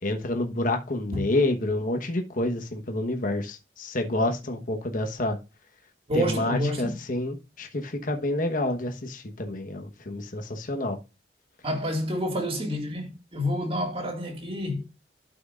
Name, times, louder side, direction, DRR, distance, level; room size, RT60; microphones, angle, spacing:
voice 1, 0.0-5.4 6.1-11.0, left 2 dB, 50° left, 1.1 m, -28 dB
voice 2, 6.1-7.0 11.6-14.9, equal, 35° right, 2.0 m, -28 dB
11.5 x 6.1 x 2.4 m
head